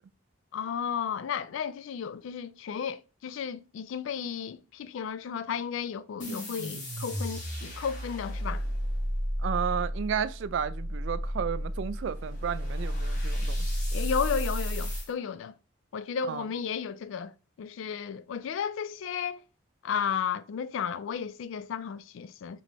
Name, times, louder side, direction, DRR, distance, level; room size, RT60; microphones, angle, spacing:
voice 1, 0.5-8.6 13.9-15.5 15.9-17.3 17.6-19.4 19.8-22.6, left 7 dB, 75° left, 0.3 m, -33 dB
sound 1, 6.2-15.1, equal, 35° left, 1.4 m, -32 dB
voice 2, 9.4-13.8 16.2-16.4, right 7 dB, 65° right, 0.3 m, -32 dB
4.2 x 3.0 x 2.9 m
head